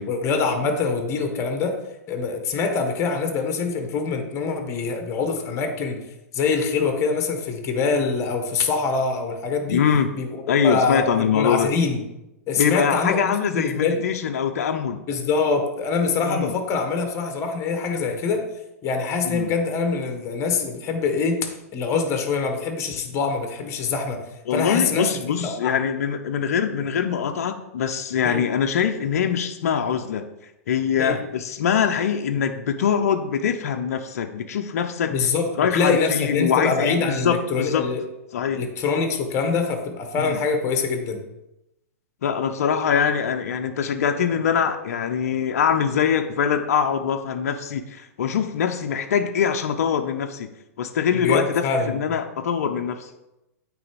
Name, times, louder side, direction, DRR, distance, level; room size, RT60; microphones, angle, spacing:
voice 1, 0.1-1.8 2.1-6.0 6.3-9.8 10.1-12.0 12.5-14.0 15.1-18.4 18.8-21.4 21.7-24.2 24.5-25.1 25.4-25.7 28.2-28.4 31.0-31.2 35.1-38.0 38.5-41.2 51.1-51.9, left 4 dB, 35° left, 5 dB, 1.4 m, -24 dB
voice 2, 9.7-10.1 10.5-11.7 12.6-15.0 16.3-16.5 19.2-19.5 24.5-30.2 30.7-35.1 35.5-37.8 38.3-38.6 40.2-40.4 42.2-50.5 50.8-53.1, left 7 dB, 65° left, 6 dB, 0.6 m, -23 dB
8.7 x 3.4 x 4.9 m, 0.92 s
hypercardioid pair, 110°, 9 cm